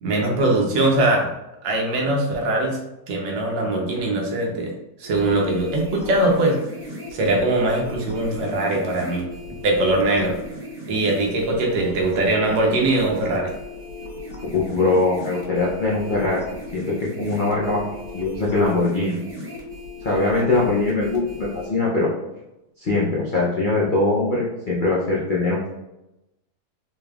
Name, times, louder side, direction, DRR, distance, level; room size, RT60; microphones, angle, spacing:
voice 1, 0.0-1.3 1.6-2.8 3.1-4.7 5.0-6.6 7.1-9.3 9.6-10.4 10.9-13.5, right 2 dB, 85° right, 0 dB, 1.5 m, -21 dB
sound 1, 5.0-21.7, left 1 dB, 50° right, 1.7 m, -37 dB
voice 2, 14.5-16.4 16.7-17.8 18.1-19.2 20.0-22.1 22.8-25.7, left 2 dB, 90° left, -5 dB, 0.4 m, -22 dB
4.5 x 3.3 x 2.3 m, 0.93 s
omnidirectional pair, 1.9 m